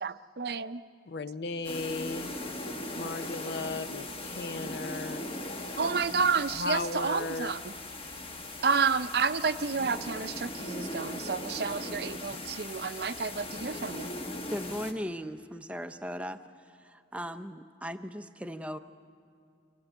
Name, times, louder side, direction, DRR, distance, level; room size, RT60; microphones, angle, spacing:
voice 1, 0.0-0.8 5.8-7.7 8.6-14.1, right 5 dB, 55° right, 12 dB, 0.6 m, -30 dB
voice 2, 1.1-2.3 2.9-5.2 6.6-7.5, left 3 dB, 60° left, 14 dB, 0.6 m, -35 dB
sound 1, 1.6-14.9, left 1 dB, 30° left, 1.2 m, -39 dB
voice 3, 14.5-16.4 16.8-18.8, equal, 5° right, 10 dB, 0.6 m, -38 dB
25.5 x 15.0 x 9.1 m, 2.2 s
head